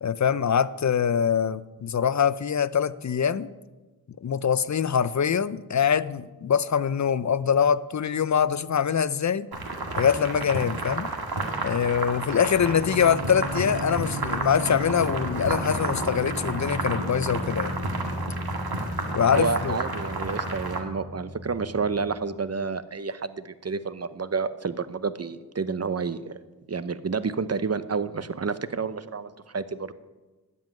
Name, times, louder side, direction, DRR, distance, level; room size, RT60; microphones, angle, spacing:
voice 1, 0.0-3.5 4.2-9.5 10.0-11.1 11.6-17.8 19.1-19.8, left 7 dB, 50° left, 17 dB, 0.5 m, -24 dB
sound 1, 9.5-20.8, right 2 dB, 70° right, 2.0 m, -31 dB
sound 2, 12.6-22.2, equal, 15° left, 2.9 m, -35 dB
voice 2, 19.4-26.2 26.7-29.9, right 5 dB, 40° right, 13 dB, 0.8 m, -29 dB
12.5 x 5.6 x 9.3 m, 1.2 s
cardioid pair, 45°, 38 cm